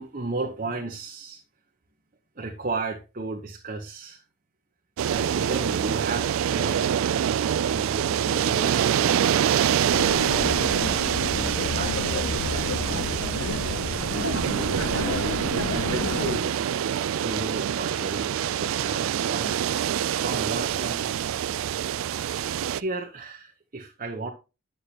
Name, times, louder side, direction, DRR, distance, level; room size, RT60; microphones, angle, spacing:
voice 1, 0.0-1.4 2.4-4.2 5.1-6.8 7.7-10.6 11.3-13.3 14.1-16.8 17.2-19.7 20.2-21.1 22.7-24.3, right 3 dB, 40° right, 0 dB, 1.0 m, -35 dB
sound 1, 5.0-22.8, right 9 dB, 75° right, 0.3 m, -25 dB
sound 2, 9.9-16.4, left 4 dB, 80° left, 0.6 m, -31 dB
9.9 x 6.7 x 2.9 m, 0.29 s
head